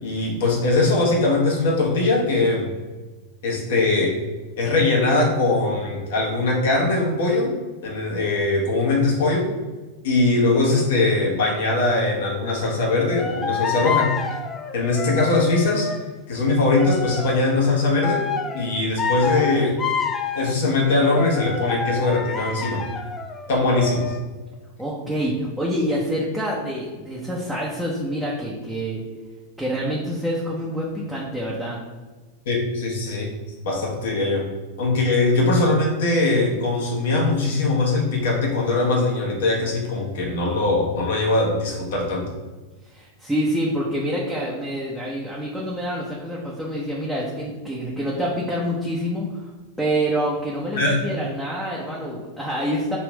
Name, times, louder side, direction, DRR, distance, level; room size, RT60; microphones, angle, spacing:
voice 1, 0.0-2.7 3.4-4.2 4.6-7.5 7.8-9.5 10.0-14.1 14.7-15.9 16.3-18.2 18.5-19.8 20.3-22.8 23.5-24.1 32.4-33.3 33.6-34.5 34.8-42.3 50.7-51.0, left 2 dB, 55° left, -2 dB, 1.3 m, -21 dB
sound 1, 13.1-16.1 16.8-17.6 18.0-20.5 21.0-24.2, left 6 dB, 20° left, 0.4 m, -28 dB
voice 2, 24.8-29.0 29.6-31.8 42.9-49.5 49.8-53.0, equal, ahead, -6 dB, 0.8 m, -26 dB
3.4 x 3.0 x 4.7 m, 1.2 s
figure-of-eight pair, 90°, 0 cm